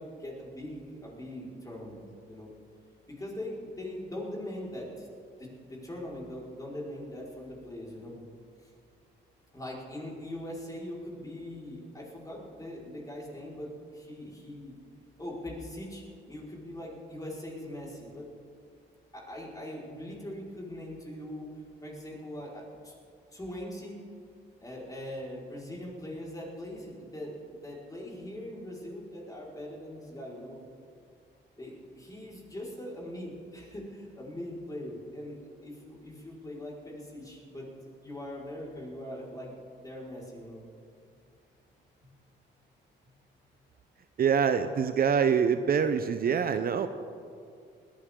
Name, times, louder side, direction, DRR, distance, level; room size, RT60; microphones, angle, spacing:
voice 1, 0.0-2.0 2.3-2.5 3.1-5.1 5.4-8.1 8.6-8.7 9.5-14.7 15.2-18.3 19.1-21.5 21.8-22.9 23.3-24.0 24.6-30.6 31.6-37.7 38.0-40.6, left 1 dB, 20° left, -5 dB, 4.9 m, -41 dB
voice 2, 44.2-46.9, right 7 dB, 50° right, 9 dB, 0.7 m, -25 dB
20.5 x 14.5 x 3.8 m, 2.3 s
cardioid pair, 90°, 20 cm